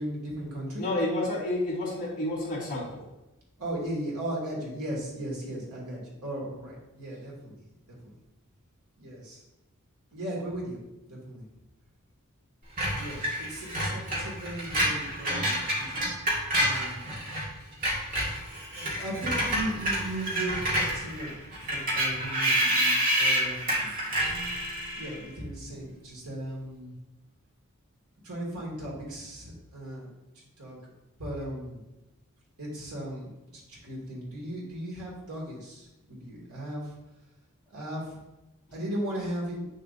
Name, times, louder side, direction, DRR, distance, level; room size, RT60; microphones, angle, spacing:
voice 1, 0.0-0.9 3.6-7.6 8.0-8.1 9.0-9.4 10.1-10.8 11.1-11.5 12.9-15.9 16.6-17.3 18.7-21.4 21.6-24.0 24.9-26.9 28.2-30.1 30.3-30.9 31.2-31.8 32.6-36.9 37.7-38.2 38.7-39.7, right 1 dB, 80° right, -4 dB, 2.7 m, -37 dB
voice 2, 0.8-3.0 13.2-13.4, left 1 dB, 35° left, -8 dB, 2.9 m, -30 dB
Screech, 12.8-17.5 17.7-25.2, right 1 dB, 40° right, 2.1 m, -28 dB
8.6 x 6.5 x 2.8 m, 0.97 s
head